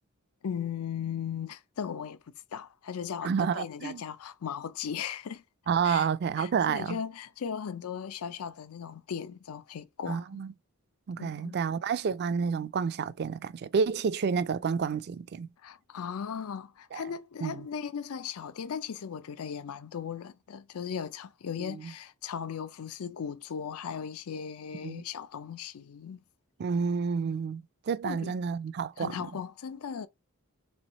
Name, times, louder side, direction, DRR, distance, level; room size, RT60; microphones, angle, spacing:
voice 1, 0.4-2.2 2.5-5.4 5.8-6.1 6.4-10.4 11.2-11.6 15.6-26.2 28.0-28.3 29.0-30.1, left 7 dB, 85° left, 0.5 m, -37 dB
voice 2, 3.2-4.0 5.7-7.0 10.1-10.5 11.1-15.5 16.9-17.0 17.4-17.6 21.6-21.8 24.8-25.0 26.6-29.2, right 6 dB, 50° right, 0.3 m, -29 dB
3.4 x 3.2 x 4.0 m
head